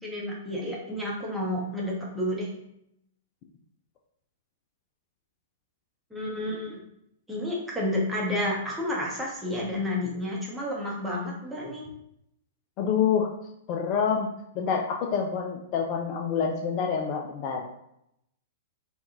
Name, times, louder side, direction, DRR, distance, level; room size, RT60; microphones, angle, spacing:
voice 1, 0.0-2.5 6.1-6.8 7.3-11.9, left 1 dB, 5° right, -4 dB, 0.8 m, -30 dB
voice 2, 12.8-13.3 13.7-17.7, left 6 dB, 35° left, 0 dB, 0.3 m, -27 dB
3.4 x 2.3 x 2.7 m, 0.77 s
figure-of-eight pair, 105°, 0 cm